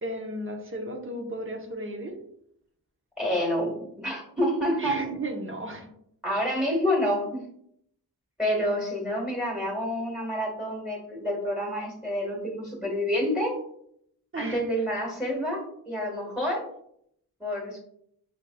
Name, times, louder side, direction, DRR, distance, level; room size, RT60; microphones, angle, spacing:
voice 1, 0.0-2.2 4.8-5.9 14.3-14.6, right 1 dB, 30° right, 3 dB, 0.9 m, -34 dB
voice 2, 3.2-5.0 6.2-7.4 8.4-13.6 14.3-16.6 17.4-17.8, equal, ahead, -2 dB, 1.5 m, -28 dB
5.6 x 3.2 x 2.3 m, 0.71 s
cardioid pair, 50°, 39 cm